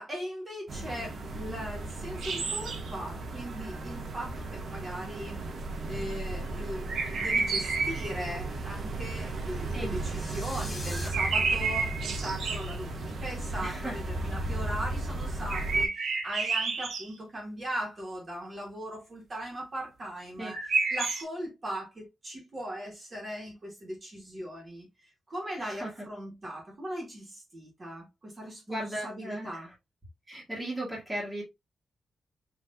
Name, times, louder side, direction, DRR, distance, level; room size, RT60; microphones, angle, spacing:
voice 1, 0.0-5.5 5.9-29.7, equal, 25° right, 1.7 m, -39 dB
sound 1, 0.7-15.9, right 2 dB, 45° right, 0.9 m, -36 dB
sound 2, 2.2-2.9 6.9-8.2 10.9-12.8 15.5-17.1 20.5-21.2, right 4 dB, 85° right, 1.2 m, -30 dB
sound 3, 9.9-11.1, left 2 dB, 20° left, 1.0 m, -42 dB
voice 2, 13.6-14.0 20.4-20.5 25.6-25.9 28.7-29.5 30.3-31.4, right 1 dB, 10° right, 1.7 m, -36 dB
5.6 x 3.1 x 2.6 m
wide cardioid pair, 175°, 0 cm